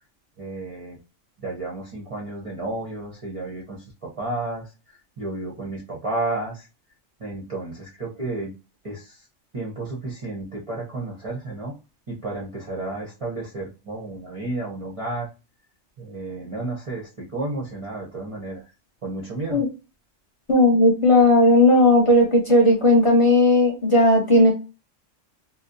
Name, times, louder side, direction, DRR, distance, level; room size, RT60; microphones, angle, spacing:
voice 1, 0.4-1.0 1.4-4.7 5.2-6.7 7.2-8.5 8.8-9.2 9.5-11.7 12.1-15.3 16.0-18.6 19.0-19.6, right 2 dB, 40° right, -4 dB, 0.5 m, -32 dB
voice 2, 20.5-24.5, left 1 dB, 30° left, -2 dB, 0.8 m, -16 dB
2.6 x 2.1 x 2.4 m, 0.30 s
omnidirectional pair, 1.3 m